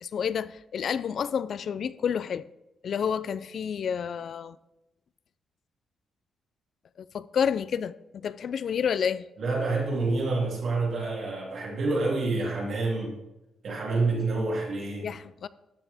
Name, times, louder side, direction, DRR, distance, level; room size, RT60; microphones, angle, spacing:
voice 1, 0.0-2.4 2.8-4.6 7.0-9.2 15.0-15.5, left 7 dB, 50° left, 0.3 m, -29 dB
voice 2, 9.4-13.2 13.6-15.1, right 3 dB, 55° right, 2.5 m, -28 dB
13.0 x 6.0 x 3.5 m
cardioid pair, 155°, 0 cm